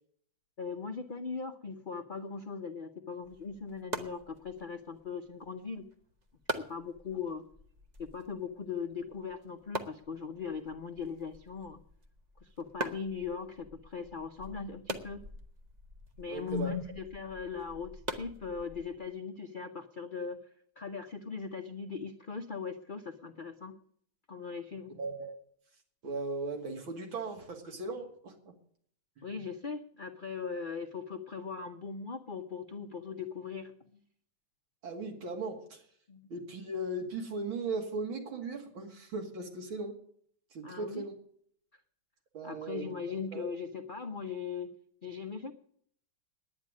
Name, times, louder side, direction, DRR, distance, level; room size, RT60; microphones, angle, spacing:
voice 1, 0.6-5.9 6.6-7.4 8.0-11.8 12.4-15.2 16.2-20.4 20.8-23.7 24.3-25.0 29.2-33.7 36.1-36.3 40.6-41.0 42.4-44.7 45.0-45.5, left 5 dB, 80° left, 5 dB, 0.4 m, -39 dB
sound 1, 3.2-19.1, right 1 dB, 35° right, 0.7 m, -44 dB
voice 2, 16.3-16.7 25.0-25.3 26.0-28.5 34.8-35.8 36.3-39.9 40.5-41.2 42.3-43.4, right 3 dB, 80° right, 2 dB, 3.0 m, -38 dB
10.0 x 9.7 x 8.5 m, 0.63 s
omnidirectional pair, 2.2 m